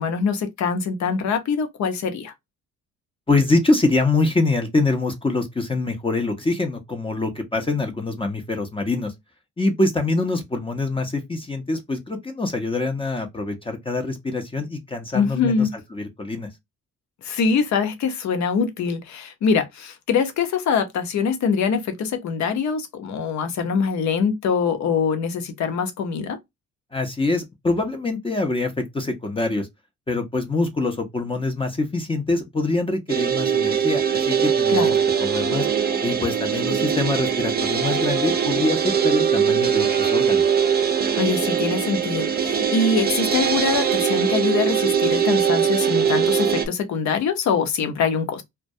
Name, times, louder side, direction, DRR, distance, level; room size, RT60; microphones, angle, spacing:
voice 1, 0.0-2.3 15.1-15.7 17.2-26.4 34.7-34.9 41.2-48.4, left 5 dB, 65° left, 0.8 m, -23 dB
voice 2, 3.3-9.1 9.6-16.5 26.9-29.7 30.1-35.7 36.0-40.4, left 2 dB, 20° left, 0.6 m, -24 dB
sound 1, 33.1-46.7, right 7 dB, 30° right, 0.5 m, -21 dB
2.2 x 2.2 x 2.6 m
cardioid pair, 90°, 30 cm